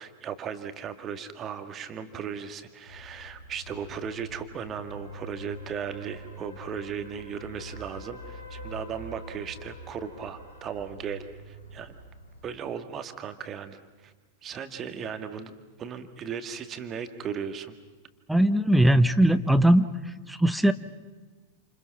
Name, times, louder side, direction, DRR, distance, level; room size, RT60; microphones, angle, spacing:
voice 1, 0.0-12.0 12.4-14.1 14.4-17.8, right 7 dB, 30° right, 8 dB, 2.0 m, -37 dB
sound 1, 2.9-12.5, equal, 75° left, 3.7 m, -45 dB
voice 2, 18.3-19.8 20.3-20.7, right 1 dB, 5° right, 11 dB, 1.0 m, -20 dB
29.0 x 28.0 x 5.9 m, 1.3 s
figure-of-eight pair, 90°, 0 cm